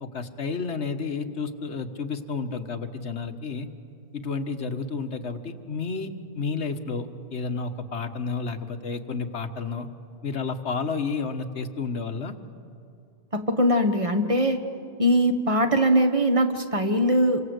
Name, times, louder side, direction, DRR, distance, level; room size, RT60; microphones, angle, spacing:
voice 1, 0.0-3.7 4.1-6.1 6.3-9.9 10.2-12.4, left 4 dB, 90° left, 7 dB, 1.6 m, -31 dB
voice 2, 13.3-14.6 15.0-17.4, equal, 30° right, 7 dB, 1.4 m, -21 dB
28.5 x 24.5 x 8.1 m, 2.5 s
omnidirectional pair, 1.1 m